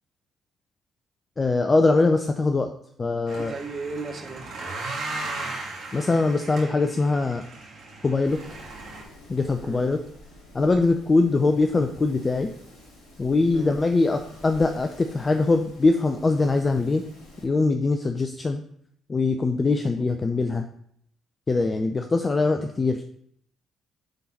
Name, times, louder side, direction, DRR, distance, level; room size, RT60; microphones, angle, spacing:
voice 1, 1.4-2.7 3.0-3.5 5.9-7.4 8.0-8.4 9.3-10.0 10.5-12.5 13.2-17.0 17.4-18.6 19.1-20.6 21.5-23.0, left 3 dB, 30° left, 6 dB, 0.5 m, -22 dB
sound 1, 3.3-9.0, right 2 dB, 60° right, 2.0 m, -36 dB
voice 2, 3.4-4.6 9.6-9.9 13.5-13.8, right 3 dB, 40° right, 3 dB, 1.3 m, -36 dB
Wind, 8.2-17.4, left 1 dB, 75° left, 2.0 m, -48 dB
9.0 x 3.9 x 4.2 m, 0.67 s
hypercardioid pair, 45°, 0 cm